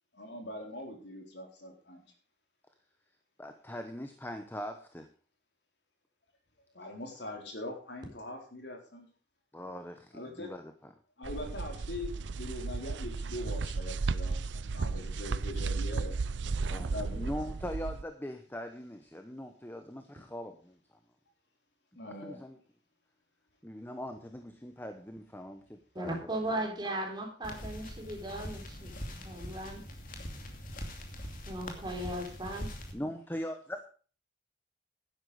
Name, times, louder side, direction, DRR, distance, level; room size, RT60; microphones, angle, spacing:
voice 1, 0.1-2.0 6.7-9.1 10.1-10.5 11.2-16.2 16.7-17.4 22.0-22.4, left 1 dB, 75° left, 3 dB, 3.9 m, -42 dB
voice 2, 3.4-5.1 9.5-10.7 16.7-20.8 22.2-22.6 23.6-26.4 32.9-33.8, equal, 10° left, 7 dB, 1.0 m, -41 dB
sound 1, 11.2-18.0, right 4 dB, 85° right, 0.6 m, -34 dB
voice 3, 25.9-29.8 31.5-32.7, right 1 dB, 25° right, 1 dB, 3.9 m, -37 dB
sound 2, 27.4-32.9, equal, 50° left, 2.7 m, -42 dB
12.0 x 10.5 x 4.8 m, 0.39 s
head